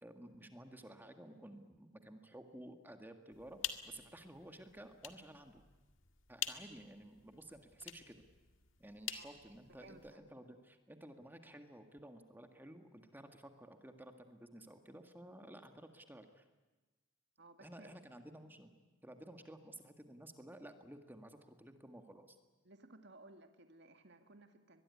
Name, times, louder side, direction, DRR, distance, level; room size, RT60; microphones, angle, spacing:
voice 1, 0.0-5.6 6.3-8.2 8.8-16.5 17.6-18.7 19.0-22.4, right 1 dB, 10° right, 6 dB, 1.8 m, -54 dB
sound 1, 3.3-10.1, left 10 dB, 75° left, 1.9 m, -48 dB
voice 2, 9.7-10.0 17.4-17.9 22.6-24.8, right 2 dB, 60° right, 7 dB, 2.1 m, -59 dB
24.0 x 21.0 x 9.7 m, 1.2 s
head